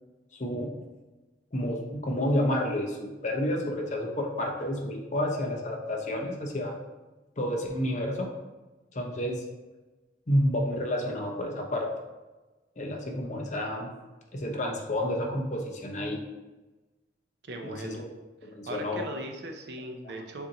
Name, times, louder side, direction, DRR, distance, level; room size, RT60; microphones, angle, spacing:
voice 1, 0.4-0.7 1.5-6.7 7.4-8.3 8.9-9.4 10.3-11.9 12.8-13.9 14.3-16.2 17.6-18.0 18.4-19.0, left 1 dB, 45° left, 1 dB, 0.7 m, -30 dB
voice 2, 17.4-18.1 18.7-20.5, right 2 dB, 65° right, 5 dB, 0.6 m, -39 dB
6.7 x 2.7 x 2.8 m, 1.1 s
head